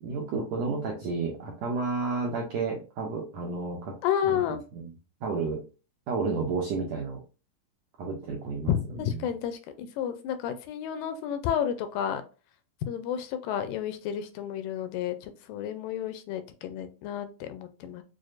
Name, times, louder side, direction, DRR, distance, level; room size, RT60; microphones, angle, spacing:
voice 1, 0.0-3.9 4.2-4.4 4.7-4.9 5.2-5.6 6.1-7.2 8.0-8.7 9.1-9.3, right 4 dB, 90° right, -1 dB, 1.5 m, -31 dB
voice 2, 4.0-4.6 8.7-12.2 12.9-18.0, left 9 dB, 80° left, 10 dB, 2.1 m, -31 dB
6.3 x 2.2 x 2.4 m, 0.33 s
omnidirectional pair, 4.0 m